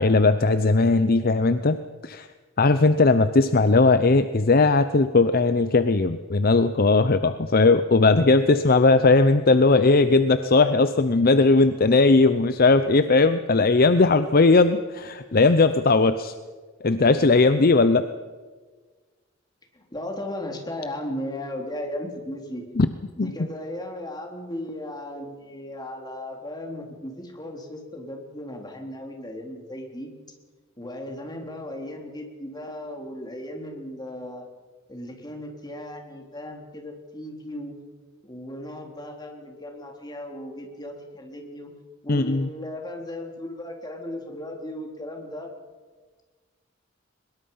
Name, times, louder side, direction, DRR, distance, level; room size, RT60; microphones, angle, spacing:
voice 1, 0.0-2.3 2.6-16.3 16.8-18.1 22.8-22.9 23.2-23.3 42.1-42.5, left 3 dB, 45° left, 11 dB, 0.7 m, -18 dB
voice 2, 19.7-22.6 23.2-30.1 30.8-34.4 34.9-37.7 38.2-41.7 42.0-45.5, left 1 dB, 20° left, 2 dB, 3.6 m, -36 dB
22.5 x 21.5 x 5.7 m, 1.4 s
head